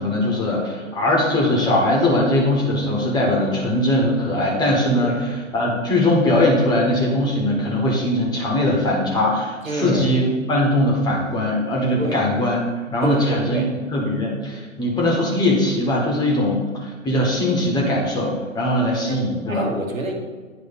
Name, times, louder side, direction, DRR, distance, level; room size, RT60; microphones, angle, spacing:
voice 1, 0.0-5.1 5.5-12.6 12.9-13.6 13.9-19.7, left 1 dB, 10° left, -2 dB, 1.1 m, -20 dB
voice 2, 9.6-10.2 12.0-12.2 13.0-13.7 18.9-20.1, right 1 dB, 75° right, 2 dB, 1.5 m, -28 dB
9.1 x 3.1 x 5.6 m, 1.4 s
figure-of-eight pair, 125°, 40 cm